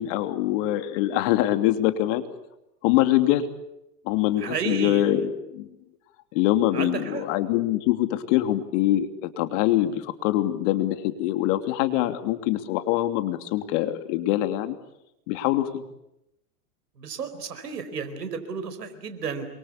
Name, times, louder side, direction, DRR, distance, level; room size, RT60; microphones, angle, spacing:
voice 1, 0.0-2.2 2.8-3.5 4.0-5.7 6.3-14.8 15.3-15.8, left 14 dB, 50° left, 9 dB, 3.1 m, -24 dB
voice 2, 4.3-5.1 6.7-7.2 17.0-19.5, right 6 dB, 85° right, 10 dB, 4.7 m, -32 dB
28.0 x 24.0 x 8.6 m, 0.87 s
hypercardioid pair, 105°, 47 cm